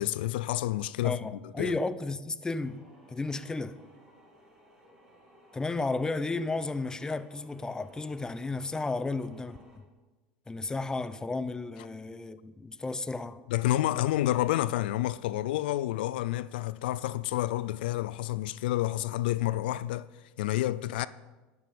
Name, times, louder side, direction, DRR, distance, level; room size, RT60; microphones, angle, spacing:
voice 1, 0.0-1.2 1.6-1.8 13.5-20.1 20.4-21.1, left 15 dB, 80° left, 0.4 m, -29 dB
voice 2, 1.0-3.8 5.5-9.8 10.5-13.4, left 3 dB, 15° left, 0.7 m, -33 dB
sound 1, 2.6-9.8, equal, 10° right, 5.4 m, -59 dB
13.0 x 11.0 x 5.1 m
hypercardioid pair, 90°, 5 cm